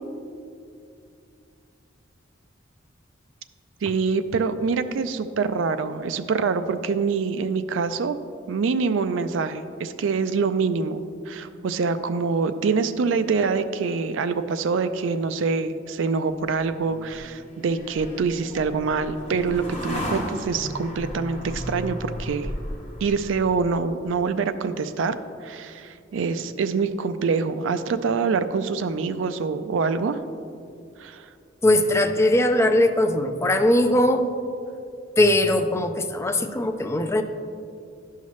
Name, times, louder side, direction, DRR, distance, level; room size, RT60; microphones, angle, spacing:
voice 1, 3.8-8.2 8.5-22.5 23.0-25.2 25.4-30.2 31.0-31.3, right 5 dB, 75° right, 11 dB, 0.4 m, -25 dB
sound 1, 16.5-23.9, equal, 35° left, 1.1 m, -35 dB
voice 2, 31.6-34.3 35.2-37.2, left 1 dB, 15° left, 7 dB, 0.4 m, -20 dB
11.5 x 5.6 x 3.1 m, 2.4 s
head